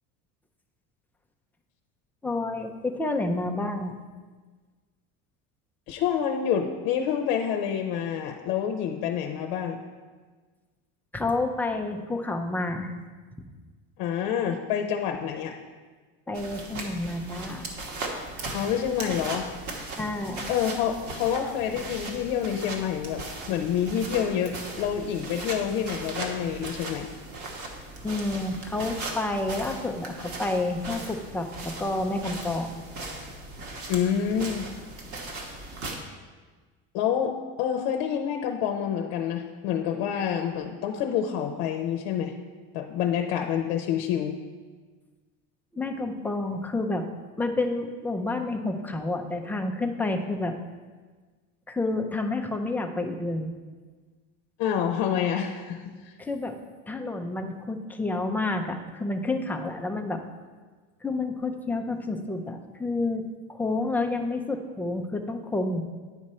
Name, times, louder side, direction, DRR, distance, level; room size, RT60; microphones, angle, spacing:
voice 1, 2.2-4.0 11.1-12.9 16.3-17.8 20.0-20.5 28.0-32.8 45.7-47.0 47.4-50.5 51.7-53.5 56.2-56.6 56.9-60.2 61.0-63.2 63.5-65.8, left 2 dB, 5° left, 3 dB, 0.5 m, -29 dB
voice 2, 5.9-9.8 14.0-15.6 18.5-19.5 20.5-27.1 33.9-34.7 36.9-42.3 42.7-44.4 54.6-56.1, left 8 dB, 75° left, 3 dB, 0.8 m, -27 dB
sound 1, 16.3-35.9, right 2 dB, 50° right, 1.4 m, -38 dB
9.7 x 5.0 x 4.3 m, 1.4 s
cardioid pair, 140°, 36 cm